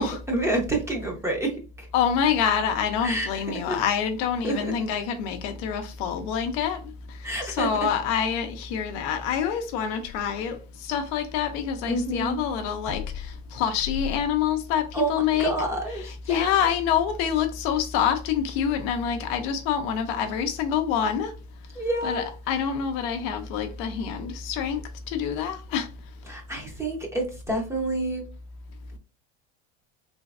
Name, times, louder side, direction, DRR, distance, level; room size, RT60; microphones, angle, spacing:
voice 1, 0.3-1.9 3.0-3.8 4.4-4.7 7.2-7.7 11.9-12.4 14.9-16.7 21.7-22.3 26.3-28.2, right 2 dB, 10° right, 0.7 m, -28 dB
voice 2, 1.9-6.8 7.4-15.5 16.3-21.3 22.0-25.9, left 8 dB, 55° left, 0.6 m, -26 dB
3.3 x 3.0 x 2.4 m
supercardioid pair, 145°, 32 cm